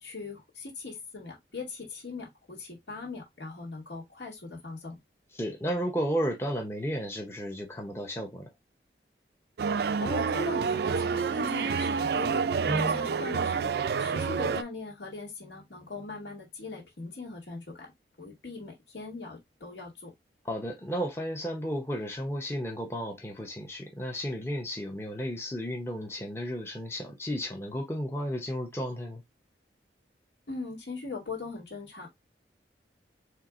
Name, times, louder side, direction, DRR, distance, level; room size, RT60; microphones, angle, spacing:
voice 1, 0.0-5.0 10.0-12.4 12.8-13.7 14.0-17.9 18.2-20.1 30.5-32.1, left 4 dB, 80° left, 2.1 m, -40 dB
voice 2, 5.3-8.5 12.6-13.0 20.4-29.2, equal, 15° left, 0.7 m, -33 dB
sound 1, 9.6-14.6, right 5 dB, 60° right, 0.3 m, -28 dB
4.5 x 3.3 x 2.5 m
head